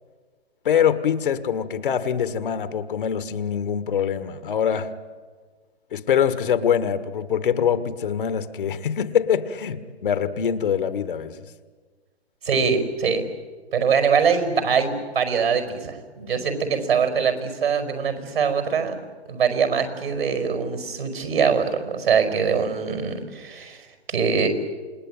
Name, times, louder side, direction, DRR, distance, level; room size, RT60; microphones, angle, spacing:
voice 1, 0.6-4.9 5.9-11.4, left 8 dB, 50° left, 12 dB, 1.6 m, -24 dB
voice 2, 12.4-13.2 13.7-18.9 19.3-24.5, right 6 dB, 65° right, 7 dB, 5.2 m, -23 dB
28.0 x 20.0 x 9.2 m, 1.4 s
figure-of-eight pair, 130°, 33 cm